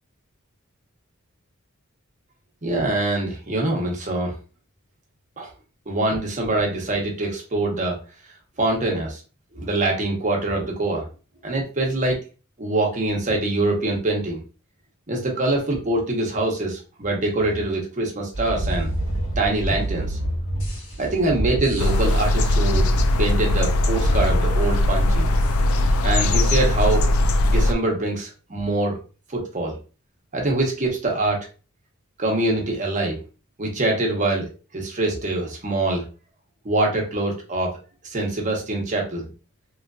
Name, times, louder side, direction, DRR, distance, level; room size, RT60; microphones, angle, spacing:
voice 1, 2.6-4.3 5.4-5.5 5.9-8.0 8.6-9.2 9.6-11.1 11.4-12.2 12.6-14.4 15.1-18.9 19.4-20.2 21.0-22.9 23.2-25.3 26.0-27.1 27.4-29.0 29.3-29.8 30.3-31.4 32.2-33.2 33.6-34.5 34.7-36.0 36.6-37.7 38.0-39.2, right 2 dB, 35° right, 0 dB, 0.9 m, -24 dB
sound 1, 18.3-26.4, right 1 dB, 60° left, 1.5 m, -29 dB
sound 2, 21.8-27.7, left 1 dB, 85° left, 0.4 m, -20 dB
3.1 x 2.6 x 2.3 m, 0.34 s
head